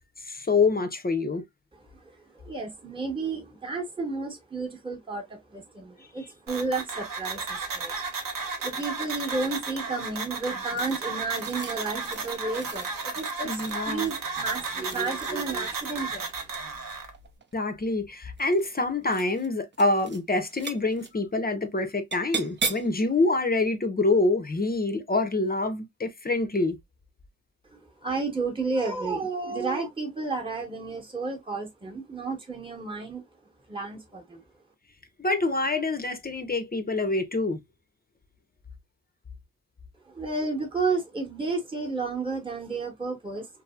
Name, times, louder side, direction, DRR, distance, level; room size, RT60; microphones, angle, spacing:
voice 1, 0.2-1.4 13.4-14.1 17.5-26.8 35.2-37.6, left 3 dB, 25° left, 0.6 m, -26 dB
voice 2, 2.0-8.0 8.6-16.3 27.7-33.2 33.7-34.4 40.1-43.5, right 3 dB, 15° right, 1.0 m, -32 dB
sound 1, 6.5-17.1, right 4 dB, 70° right, 0.9 m, -34 dB
sound 2, 10.8-15.8 17.0-17.6 18.3-18.8 19.0-19.5 19.7-20.2 20.5-21.1 22.1-23.0, right 4 dB, 35° right, 0.6 m, -37 dB
2.7 x 2.6 x 2.2 m
cardioid pair, 60°, 34 cm